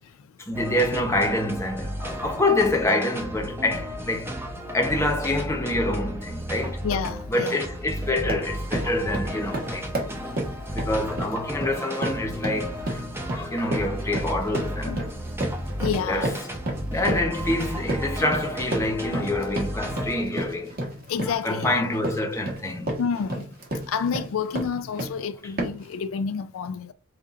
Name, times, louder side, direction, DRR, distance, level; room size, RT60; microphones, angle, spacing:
voice 1, 0.4-4.3 4.7-6.8 7.3-10.0 10.7-13.0 13.3-15.0 16.1-16.3 16.9-20.8 21.3-23.0, left 1 dB, 15° left, 0.9 m, -26 dB
sound 1, 0.5-20.2, equal, 10° right, 0.7 m, -33 dB
sound 2, 6.6-6.8 7.2-7.6 7.9-25.2 25.6-25.9, right 1 dB, 45° right, 1.5 m, -32 dB
voice 2, 6.8-7.6 14.8-15.0 15.8-16.3 21.1-21.7 23.0-23.5 23.9-26.9, left 6 dB, 75° left, 0.4 m, -29 dB
5.7 x 2.5 x 3.7 m
head